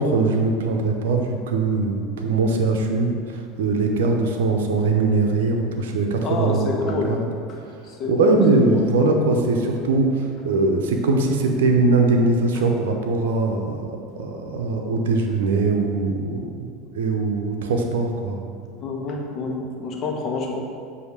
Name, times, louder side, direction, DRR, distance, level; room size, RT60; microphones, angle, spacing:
voice 1, 0.0-7.2 8.1-13.9 14.2-18.4, right 3 dB, 75° right, 3 dB, 0.7 m, -21 dB
voice 2, 6.2-7.2 7.5-8.4 8.7-8.9 18.8-20.6, left 4 dB, 40° left, 0 dB, 1.1 m, -28 dB
8.1 x 2.8 x 4.9 m, 2.5 s
hypercardioid pair, 80°, 0 cm